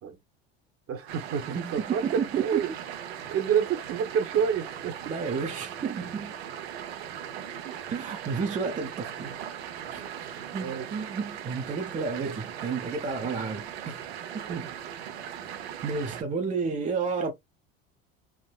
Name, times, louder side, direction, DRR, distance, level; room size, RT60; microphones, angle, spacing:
voice 1, 0.9-1.5 1.7-2.7 3.3-5.0 7.6-7.8 10.0-10.9 14.5-14.6, right 8 dB, 45° right, 1.0 m, -29 dB
sound 1, 1.1-16.2, right 9 dB, 80° right, 0.8 m, -39 dB
voice 2, 1.5-2.6 5.1-6.3 7.9-9.4 9.9-10.0 10.5-14.0 14.3-14.7 15.8-17.3, right 5 dB, 25° right, 0.7 m, -31 dB
3.5 x 2.0 x 2.3 m
hypercardioid pair, 85°, 31 cm